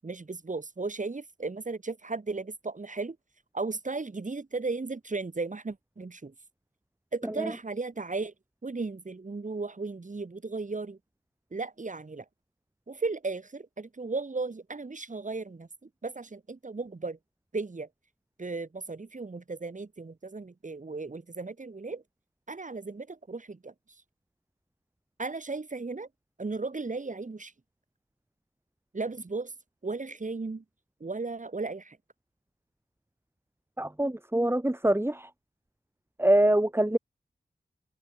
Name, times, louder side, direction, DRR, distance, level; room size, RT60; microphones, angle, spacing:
voice 1, 0.0-3.2 3.5-6.3 7.1-8.3 8.6-11.0 11.5-12.2 12.9-17.2 17.5-17.9 18.4-22.0 22.5-23.7 25.2-26.1 26.4-27.5 28.9-29.5 29.8-30.6 31.0-32.0, right 3 dB, 50° right, 7.9 m, -35 dB
voice 2, 33.8-35.3 36.2-37.0, right 1 dB, 15° right, 6.8 m, -24 dB
cardioid pair, 50°, 16 cm